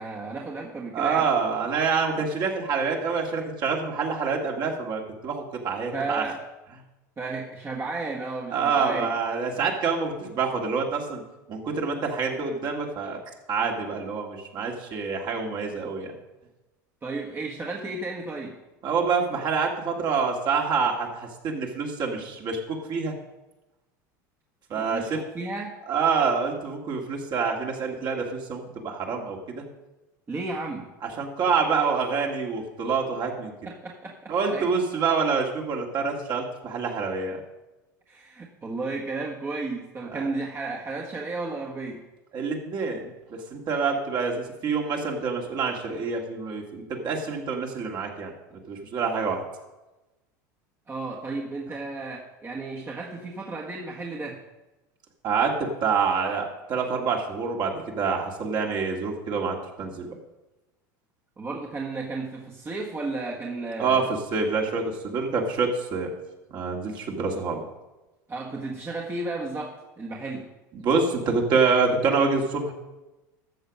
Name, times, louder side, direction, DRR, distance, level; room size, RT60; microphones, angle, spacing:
voice 1, 0.0-1.3 5.9-6.4 7.2-9.1 17.0-18.6 24.8-25.7 30.3-30.9 33.6-34.7 38.1-42.0 50.9-54.4 61.4-64.1 68.3-70.5, right 3 dB, 25° right, -2 dB, 1.5 m, -33 dB
voice 2, 0.9-6.2 8.5-11.2 11.5-13.2 13.5-16.1 18.8-23.1 24.7-25.2 25.9-29.6 31.2-33.5 34.3-37.4 40.1-40.3 42.3-43.0 43.3-48.3 48.7-49.4 55.2-60.1 63.8-66.1 66.5-67.6 70.7-72.7, right 5 dB, 45° right, 1 dB, 2.4 m, -26 dB
13.5 x 6.9 x 5.4 m, 1.0 s
hypercardioid pair, 90°, 10 cm